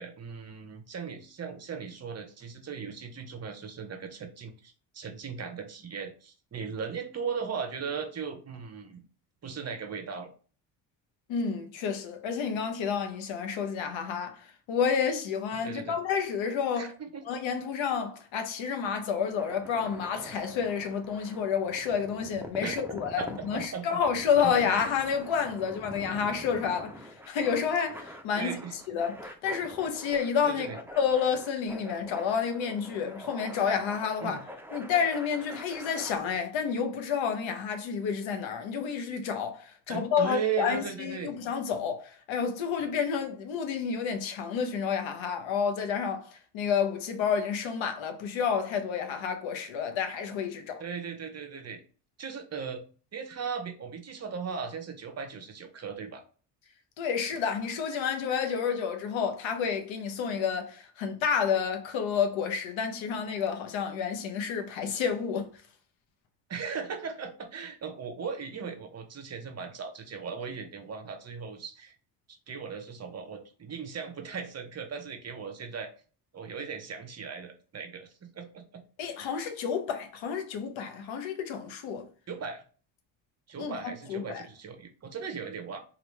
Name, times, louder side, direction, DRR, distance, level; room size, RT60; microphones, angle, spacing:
voice 1, 0.0-9.0 9.4-10.3 15.6-16.0 16.7-17.2 22.6-22.7 23.2-24.0 24.4-24.5 28.4-28.8 30.5-30.8 34.2-34.4 39.9-41.3 50.8-51.8 52.2-52.8 53.1-56.2 66.5-71.9 72.3-75.9 76.3-78.8 82.3-82.6 83.5-85.8, right 6 dB, 30° right, 0.7 m, -37 dB
voice 2, 11.3-16.9 17.3-28.6 28.9-30.7 31.0-34.4 34.7-50.8 57.0-65.5 79.0-82.1 83.6-83.7 84.1-84.4, left 7 dB, 65° left, 0.8 m, -30 dB
sound 1, 19.1-36.1, equal, 5° right, 0.5 m, -45 dB
3.0 x 2.5 x 3.1 m
supercardioid pair, 60°, 49 cm